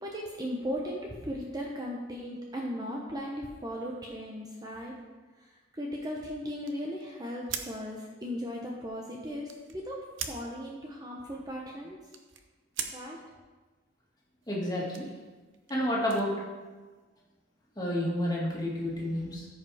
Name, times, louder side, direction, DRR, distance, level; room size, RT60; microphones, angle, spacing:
voice 1, 0.0-4.9 5.7-12.0 12.9-13.2, equal, 20° right, -1 dB, 0.8 m, -37 dB
sound 1, 6.6-9.9 10.1-10.4 10.8-13.0 14.4-17.0, right 8 dB, 70° right, 0.7 m, -43 dB
voice 2, 14.5-15.1 15.7-16.3 17.8-19.5, equal, 20° left, -5 dB, 2.0 m, -30 dB
14.0 x 5.3 x 3.5 m, 1.3 s
head